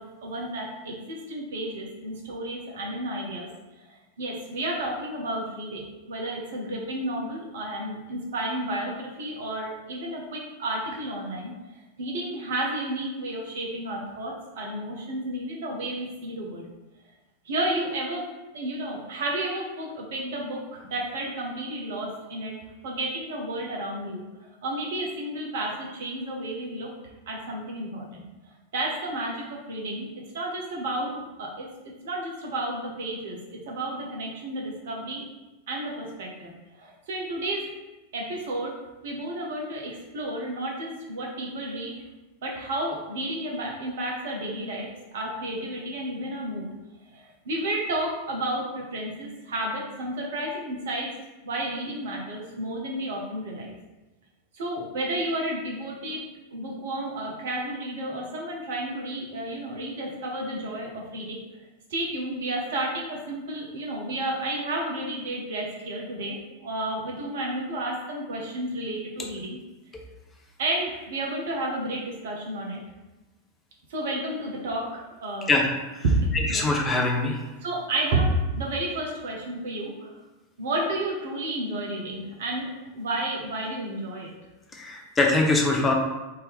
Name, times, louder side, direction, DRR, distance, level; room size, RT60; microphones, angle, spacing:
voice 1, 0.0-3.5 3.8-5.8 6.1-11.5 12.0-16.6 17.4-22.5 22.8-26.9 27.3-28.3 28.7-30.1 30.3-31.7 32.0-33.4 33.6-35.3 35.7-37.7 38.1-38.7 39.0-41.9 42.4-46.6 47.1-51.1 51.4-53.8 54.5-56.2 56.5-61.4 61.9-69.6 70.6-72.8 73.9-75.5 76.0-76.1 76.5-76.6 77.6-80.1 80.6-84.3, right 1 dB, 60° right, -1 dB, 0.9 m, -31 dB
voice 2, 76.5-77.4 84.7-85.9, left 2 dB, 15° left, 0 dB, 0.7 m, -23 dB
3.6 x 2.8 x 3.6 m, 1.1 s
figure-of-eight pair, 90°, 0 cm